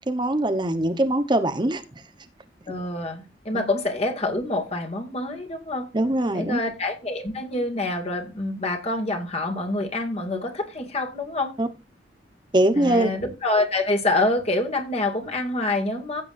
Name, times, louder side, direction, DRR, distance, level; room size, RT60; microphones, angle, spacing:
voice 1, 0.1-1.8 3.5-3.7 5.9-6.6 11.6-11.7 12.5-13.1, right 1 dB, 25° right, 1.0 m, -22 dB
voice 2, 2.7-5.9 6.3-11.5 12.8-16.2, left 2 dB, 35° left, 2.3 m, -26 dB
15.5 x 8.2 x 2.6 m
head